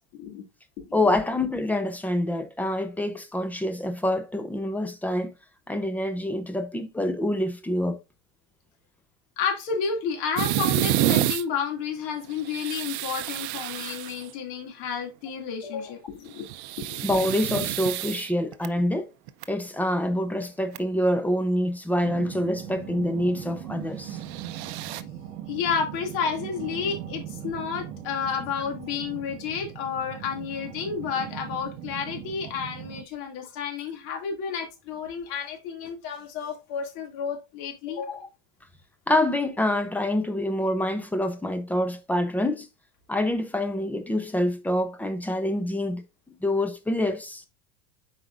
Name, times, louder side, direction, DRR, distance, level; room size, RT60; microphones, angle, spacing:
voice 1, 0.1-0.4 0.8-1.0 9.4-16.5 16.8-17.0 25.5-38.3, left 6 dB, 60° left, 2.4 m, -31 dB
voice 2, 0.9-5.3 5.7-8.0 17.0-19.1 19.5-24.2 38.1-38.3 39.1-42.7 43.1-46.0 46.4-47.4, left 1 dB, 5° left, 0.6 m, -26 dB
sound 1, 10.4-11.4 12.3-14.3 16.3-18.7 19.3-19.4 20.4-20.5 20.7-20.8 24.1-25.0, right 13 dB, 60° right, 0.7 m, -28 dB
sound 2, 22.0-33.0, right 10 dB, 80° right, 1.2 m, -39 dB
7.8 x 4.8 x 2.5 m
supercardioid pair, 140°, 37 cm